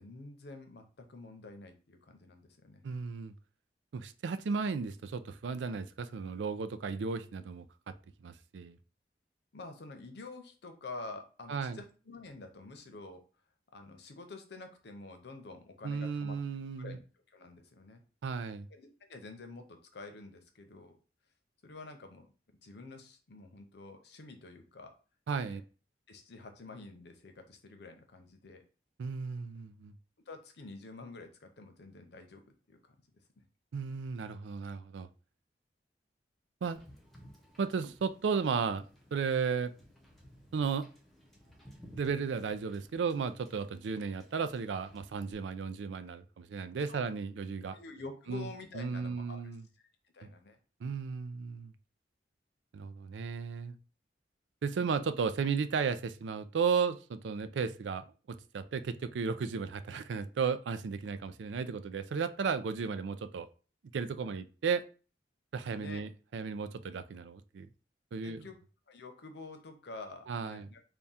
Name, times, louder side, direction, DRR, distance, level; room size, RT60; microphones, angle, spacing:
voice 1, 0.0-2.8 9.5-13.2 13.7-16.4 16.8-17.0 17.3-18.0 18.7-21.0 21.6-22.3 22.6-24.9 25.4-25.6 26.1-28.6 30.3-33.0 33.4-33.5 46.9-47.1 47.7-49.4 50.1-50.6 65.8-66.0 68.2-68.6 68.9-70.8, left 3 dB, 65° left, 0.7 m, -48 dB
voice 2, 2.8-3.3 3.9-7.6 8.2-8.8 11.5-11.8 15.8-17.0 18.2-18.7 25.3-25.6 29.0-29.9 33.7-35.1 36.6-36.8 37.6-38.8 39.1-39.7 40.5-40.9 42.0-47.8 48.3-48.5 48.7-49.6 50.2-50.3 50.8-51.7 52.7-53.8 54.6-58.0 58.5-63.5 63.9-64.8 65.5-67.7 68.1-68.4 70.3-70.7, right 5 dB, 85° right, 0.4 m, -34 dB
Wind / Boat Water vehicle, 36.7-45.3, equal, ahead, 0.9 m, -58 dB
3.5 x 2.3 x 4.1 m
head